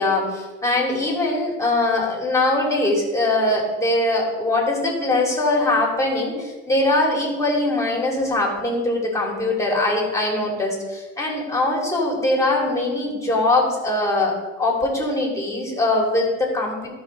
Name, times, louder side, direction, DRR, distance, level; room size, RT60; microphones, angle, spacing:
voice 1, 0.0-16.9, left 2 dB, 10° left, -3 dB, 3.2 m, -22 dB
13.5 x 5.1 x 4.1 m, 1.2 s
cardioid pair, 90°, 30 cm